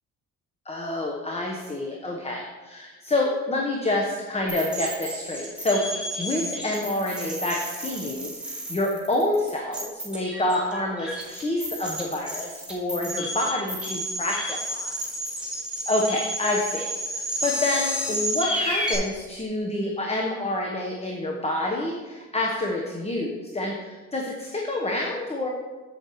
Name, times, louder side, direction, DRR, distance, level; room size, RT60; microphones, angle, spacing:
voice 1, 0.6-14.9 15.9-25.5, left 1 dB, 20° left, -1 dB, 1.1 m, -28 dB
sound 1, 4.5-19.0, equal, 5° right, 2.8 m, -31 dB
8.4 x 8.0 x 3.1 m, 1.3 s
cardioid pair, 90°, 30 cm